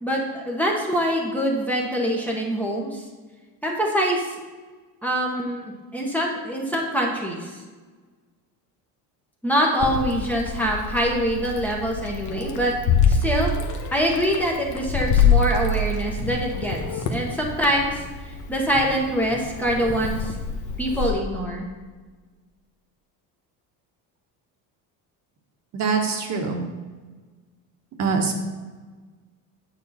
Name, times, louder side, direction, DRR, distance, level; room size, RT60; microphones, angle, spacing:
voice 1, 0.0-3.0 3.6-4.3 5.0-5.6 5.9-7.6 9.4-12.7 13.1-13.5 13.9-18.0 18.5-20.3 20.8-21.7, equal, 5° left, -2 dB, 1.3 m, -24 dB
Meow, 9.8-21.1, left 5 dB, 50° left, 1.2 m, -25 dB
voice 2, 25.7-26.7 28.0-28.4, right 4 dB, 45° right, 2 dB, 1.5 m, -24 dB
9.2 x 7.5 x 4.3 m, 1.4 s
cardioid pair, 150°, 38 cm